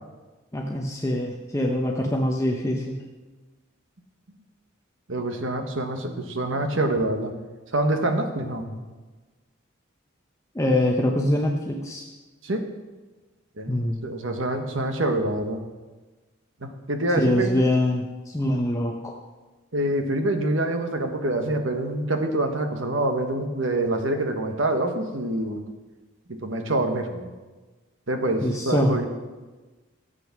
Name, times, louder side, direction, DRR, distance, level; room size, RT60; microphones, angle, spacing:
voice 1, 0.5-3.0 8.6-8.8 10.5-12.1 13.7-14.0 17.2-19.1 28.4-29.0, left 1 dB, 15° left, 0 dB, 0.9 m, -24 dB
voice 2, 5.1-7.3 7.7-8.6 12.4-12.7 13.6-13.7 14.0-15.6 16.6-17.6 19.7-25.7 26.3-27.3 28.1-29.1, right 1 dB, 65° right, 5 dB, 1.4 m, -26 dB
14.0 x 8.3 x 6.1 m, 1.3 s
head